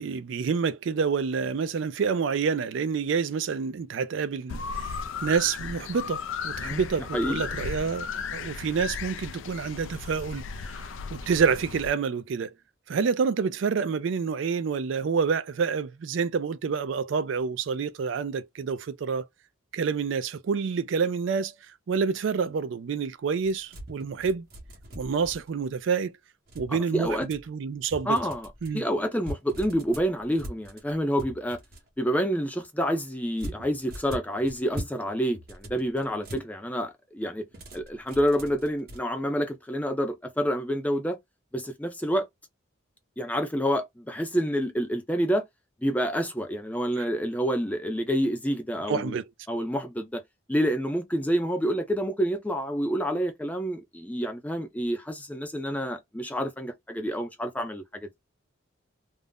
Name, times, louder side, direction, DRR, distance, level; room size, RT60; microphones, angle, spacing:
voice 1, 0.0-10.4 11.1-12.5 12.9-19.2 19.7-21.5 21.9-24.5 25.0-26.1 26.6-28.2 28.6-28.8 47.0-47.1 48.9-49.2, right 5 dB, 65° right, 0.4 m, -28 dB
sound 1, 4.5-11.9, left 6 dB, 70° left, 0.3 m, -35 dB
voice 2, 7.1-7.5 26.7-27.3 28.1-28.5 28.7-31.6 32.0-37.4 37.7-41.2 41.5-42.3 43.2-45.4 45.8-49.2 49.5-50.2 50.5-58.1, equal, 5° left, 0.5 m, -28 dB
sound 2, 23.4-25.7 26.5-27.5 27.9-28.7 29.2-31.9 33.4-35.0 35.3-36.5 37.5-39.0, equal, 50° right, 1.0 m, -41 dB
2.5 x 2.1 x 3.4 m
head